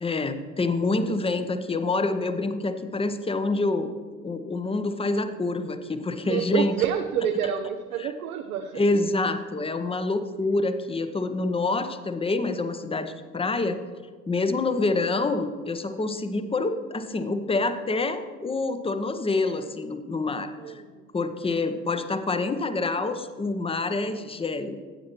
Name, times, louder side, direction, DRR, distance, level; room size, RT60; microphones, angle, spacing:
voice 1, 0.0-3.9 4.2-6.7 8.0-8.1 8.7-13.8 14.3-20.8 21.1-24.8, left 3 dB, 15° left, 9 dB, 0.7 m, -27 dB
voice 2, 6.2-8.8 20.6-21.1, right 8 dB, 75° right, 7 dB, 0.6 m, -28 dB
15.0 x 8.4 x 3.0 m, 1.5 s
figure-of-eight pair, 55°, 44 cm